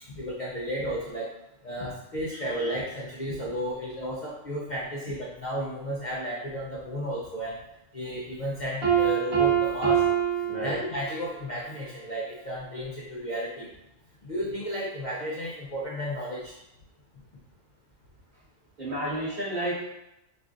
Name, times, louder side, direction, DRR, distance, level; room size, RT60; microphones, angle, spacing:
voice 1, 0.1-1.3 1.6-7.6 7.9-10.2 10.6-13.7 14.2-16.5, equal, 50° left, -5 dB, 0.6 m, -33 dB
Piano, 8.8-11.4, right 8 dB, 50° right, 1.4 m, -25 dB
voice 2, 18.8-19.8, right 1 dB, 35° right, -12 dB, 1.5 m, -31 dB
6.5 x 2.5 x 2.5 m, 0.87 s
omnidirectional pair, 1.4 m